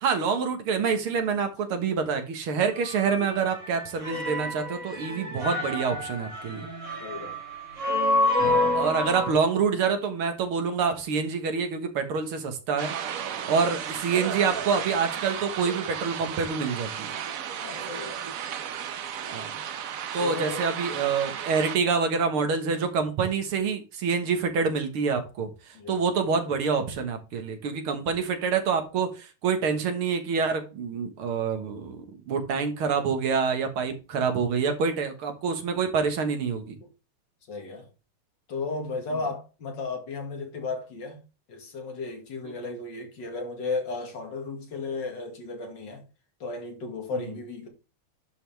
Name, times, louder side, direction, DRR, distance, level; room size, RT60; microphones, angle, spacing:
voice 1, 0.0-6.7 8.5-12.9 13.5-17.1 19.3-19.5 20.1-32.0 32.3-36.8 42.5-42.6, right 5 dB, 90° right, 2.3 m, -27 dB
sound 1, 2.8-9.3, left 1 dB, 35° right, 2.9 m, -28 dB
voice 2, 7.0-7.4 13.3-13.6 17.6-18.3 20.2-20.6 25.7-26.0 37.5-37.9 38.5-41.2 41.5-46.0 46.4-47.7, left 3 dB, 60° left, 2.6 m, -34 dB
sound 2, 12.8-21.8, right 8 dB, 60° right, 0.9 m, -34 dB
11.0 x 5.3 x 3.4 m
omnidirectional pair, 2.3 m